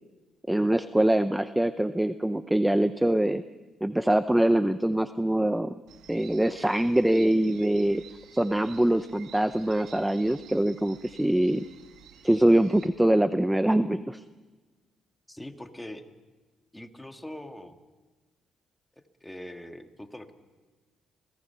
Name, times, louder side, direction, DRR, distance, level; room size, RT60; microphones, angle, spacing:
voice 1, 0.5-3.4 3.8-5.7 6.1-8.0 8.3-11.7 12.2-14.2, right 1 dB, 5° right, 12 dB, 0.6 m, -24 dB
sound 1, 5.9-12.9, right 8 dB, 90° right, 2.1 m, -52 dB
voice 2, 15.3-16.0 16.7-17.8 19.2-20.3, left 1 dB, 10° left, 6 dB, 1.8 m, -42 dB
28.0 x 18.5 x 5.8 m, 1.3 s
cardioid pair, 90°, 0 cm